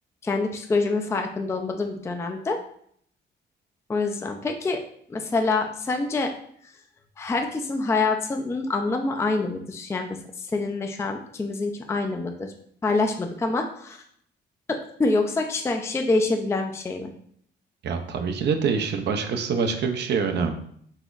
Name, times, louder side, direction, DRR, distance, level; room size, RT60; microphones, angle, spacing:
voice 1, 0.2-2.6 3.9-4.8 5.1-6.3 7.2-12.5 12.8-14.0 14.7-17.1, left 3 dB, 15° left, 4 dB, 0.3 m, -26 dB
voice 2, 17.8-20.5, right 5 dB, 60° right, 5 dB, 0.5 m, -25 dB
4.1 x 2.9 x 2.4 m, 0.64 s
cardioid pair, 90°, 20 cm